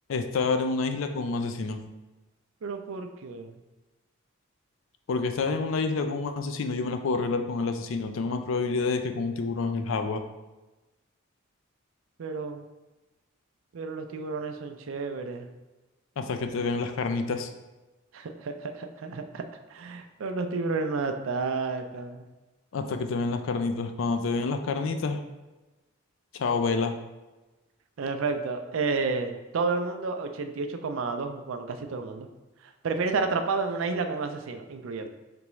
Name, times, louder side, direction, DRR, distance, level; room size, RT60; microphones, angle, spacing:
voice 1, 0.1-1.8 5.1-10.2 16.2-17.5 22.7-25.2 26.3-27.0, left 4 dB, 65° left, 7 dB, 0.4 m, -28 dB
voice 2, 2.6-3.6 12.2-12.6 13.7-15.5 18.1-19.4 19.7-22.3 28.0-32.3 32.8-35.1, right 4 dB, 70° right, 7 dB, 0.4 m, -31 dB
3.9 x 3.4 x 3.1 m, 1.1 s
head